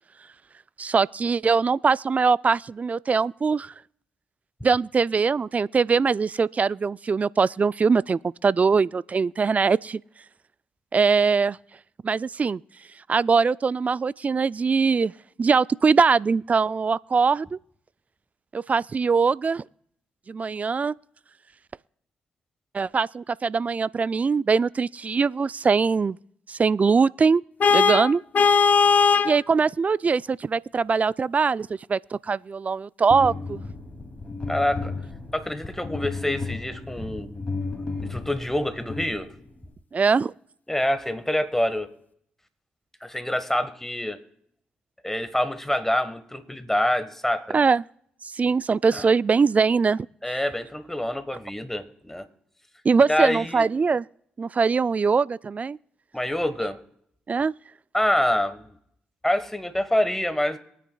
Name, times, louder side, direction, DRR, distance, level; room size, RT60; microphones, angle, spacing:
voice 1, 0.8-3.7 4.6-10.0 10.9-11.6 12.0-12.6 13.1-15.1 15.4-17.6 18.5-19.6 20.3-20.9 22.7-26.2 26.5-27.4 27.7-28.2 29.2-33.6 39.9-40.3 47.5-47.8 48.3-50.1 52.8-54.1 54.4-55.8 57.3-57.5, right 5 dB, 35° right, 0.3 m, -22 dB
Vehicle horn car horn honking, 27.6-29.4, left 5 dB, 45° left, 0.4 m, -18 dB
sound 1, 33.1-39.7, left 3 dB, 30° left, 2.6 m, -34 dB
voice 2, 34.5-34.9 35.3-37.3 38.0-39.3 40.7-41.9 43.0-44.2 45.0-47.6 48.9-49.1 50.2-52.3 53.1-53.7 56.1-56.8 57.9-58.7 59.2-60.6, left 1 dB, 10° left, 1.4 m, -26 dB
23.5 x 9.2 x 2.3 m
hypercardioid pair, 45°, 4 cm